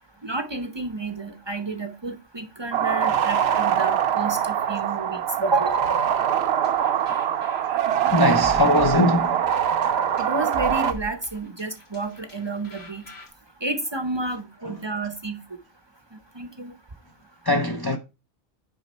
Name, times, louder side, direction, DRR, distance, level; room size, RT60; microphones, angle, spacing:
voice 1, 0.2-5.9 10.2-13.0 13.6-15.4 16.3-16.7, right 3 dB, 30° right, 0.6 m, -30 dB
sound 1, 2.7-10.9, right 9 dB, 70° right, 0.9 m, -23 dB
sound 2, 6.4-13.3, left 1 dB, 55° left, 2.0 m, -42 dB
voice 2, 8.1-9.4 17.4-18.0, left 1 dB, 35° left, 0.4 m, -21 dB
6.3 x 5.0 x 4.2 m
omnidirectional pair, 1.1 m